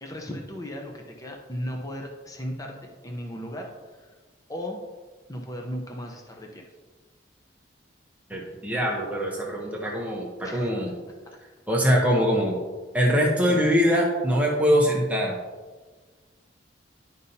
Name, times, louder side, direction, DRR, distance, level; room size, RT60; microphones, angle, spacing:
voice 1, 0.0-2.8 3.0-4.2 4.5-4.8 5.3-6.6 10.4-10.7 11.3-11.4 13.5-13.6, equal, 20° left, 1 dB, 0.7 m, -36 dB
voice 2, 8.3-10.9 11.7-12.6 12.9-15.4, equal, 10° right, -3 dB, 0.9 m, -23 dB
11.0 x 5.3 x 2.8 m, 1.4 s
head